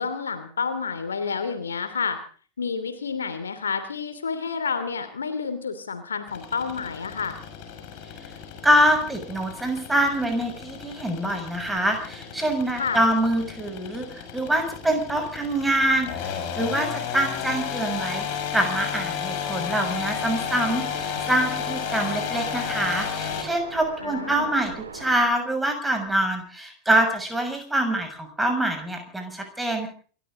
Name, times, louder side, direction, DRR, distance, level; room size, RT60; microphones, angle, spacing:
voice 1, 0.0-2.2 2.6-7.3 12.8-13.0 24.0-24.5, left 5 dB, 70° left, 10 dB, 2.8 m, -29 dB
sound 1, 6.3-23.4, left 8 dB, 45° left, 6.5 m, -33 dB
voice 2, 8.6-18.3 18.5-29.9, right 1 dB, 5° right, 5 dB, 6.7 m, -25 dB
Waves surf, 19.8-25.2, right 4 dB, 70° right, 4.2 m, -39 dB
28.0 x 13.5 x 3.8 m, 0.42 s
figure-of-eight pair, 90°, 0 cm